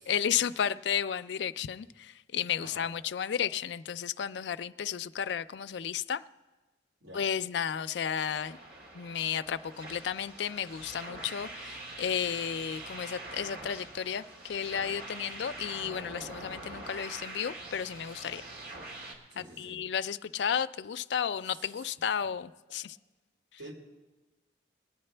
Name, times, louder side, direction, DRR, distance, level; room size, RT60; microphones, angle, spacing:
voice 1, 0.1-6.2 7.1-8.6 8.9-18.4 19.6-23.0, left 8 dB, 70° left, 13 dB, 0.4 m, -33 dB
voice 2, 2.6-2.9 7.0-7.2 19.3-19.9 21.4-21.9 23.6-23.7, right 1 dB, 75° right, -2 dB, 2.8 m, -49 dB
sound 1, 8.2-19.2, right 2 dB, 55° right, 1.8 m, -44 dB
21.5 x 9.5 x 3.3 m, 1.2 s
head